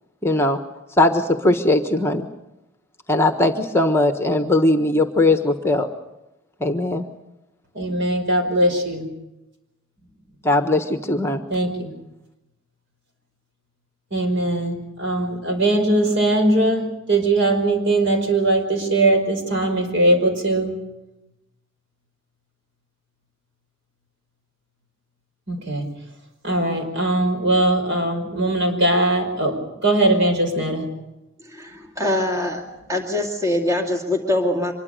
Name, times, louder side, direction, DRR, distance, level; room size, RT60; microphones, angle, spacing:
voice 1, 0.2-0.6 1.0-2.3 3.1-5.9 6.6-7.0 10.4-11.4, left 2 dB, 10° left, 7 dB, 1.3 m, -19 dB
voice 2, 7.7-9.1 11.5-11.9 14.1-20.7 25.5-25.9 26.4-29.6 29.8-30.9, right 1 dB, 60° right, 5 dB, 5.4 m, -20 dB
voice 3, 31.5-32.6 32.9-34.7, left 1 dB, 15° right, 2 dB, 2.3 m, -23 dB
25.0 x 22.0 x 6.7 m, 0.92 s
head